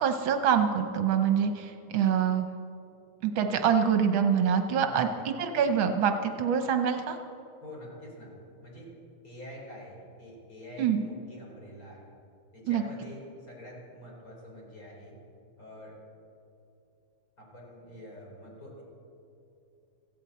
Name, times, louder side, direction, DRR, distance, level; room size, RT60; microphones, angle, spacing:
voice 1, 0.0-2.5 3.2-7.2 10.8-11.0 12.7-12.8, right 7 dB, 70° right, 7 dB, 1.5 m, -25 dB
voice 2, 4.9-5.3 7.6-8.3 8.6-8.9 9.2-12.0 12.5-15.2 15.6-15.9 17.4-18.8, left 1 dB, 40° left, -4 dB, 4.5 m, -46 dB
16.5 x 15.5 x 4.2 m, 2.7 s
omnidirectional pair, 2.3 m